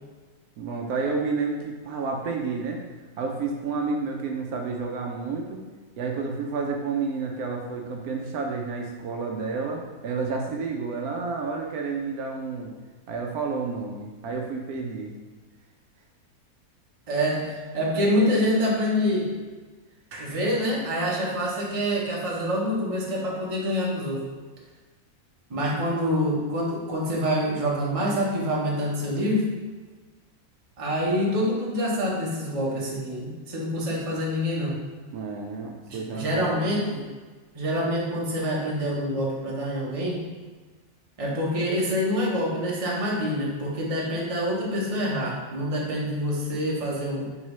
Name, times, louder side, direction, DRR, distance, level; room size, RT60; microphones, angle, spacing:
voice 1, 0.6-2.8 3.2-5.6 6.0-12.7 13.1-15.1 35.1-36.6, right 4 dB, 75° right, 1 dB, 1.0 m, -30 dB
voice 2, 17.1-19.3 20.1-24.3 25.5-29.6 30.8-34.8 35.9-37.0 37.5-40.3 41.2-47.3, equal, 30° right, -4 dB, 0.7 m, -26 dB
4.7 x 3.6 x 3.1 m, 1.3 s
omnidirectional pair, 1.6 m